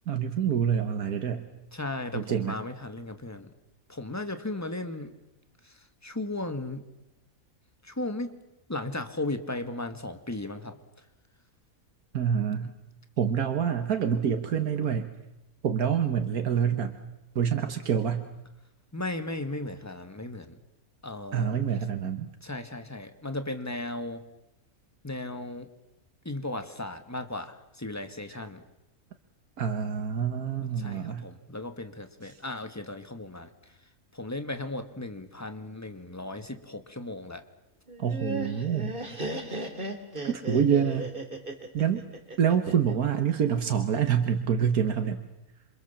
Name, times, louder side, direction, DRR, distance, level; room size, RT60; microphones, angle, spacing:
voice 1, 0.1-1.5 2.1-2.6 12.1-12.7 13.2-15.1 15.6-17.0 17.4-18.3 21.3-22.3 29.6-31.3 38.0-39.0 40.2-41.1 41.7-42.0 42.4-45.2, right 8 dB, 85° right, 6 dB, 1.8 m, -26 dB
voice 2, 1.7-3.5 3.9-5.1 5.6-6.8 7.8-8.3 8.7-10.8 18.9-20.6 21.0-21.8 22.4-24.2 25.0-25.7 26.3-28.6 30.6-33.7 34.1-37.4, left 2 dB, 10° left, 8 dB, 1.8 m, -36 dB
Laughter, 37.9-42.9, right 2 dB, 35° right, 3.0 m, -36 dB
27.5 x 26.0 x 7.3 m, 0.96 s
omnidirectional pair, 1.5 m